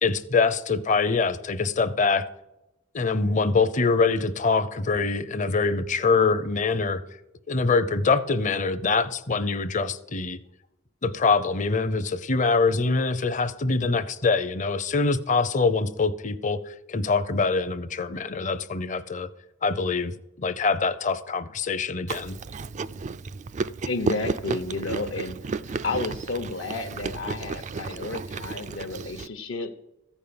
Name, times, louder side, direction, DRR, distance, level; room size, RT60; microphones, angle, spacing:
voice 1, 0.0-2.3 2.9-7.0 7.5-10.4 11.0-19.3 19.6-22.4, left 4 dB, 40° left, 0.6 m, -24 dB
Chewing mastication, 22.1-29.3, right 4 dB, 35° right, 0.3 m, -33 dB
voice 2, 23.9-29.7, left 3 dB, 75° left, 1.0 m, -32 dB
14.5 x 5.5 x 8.7 m
head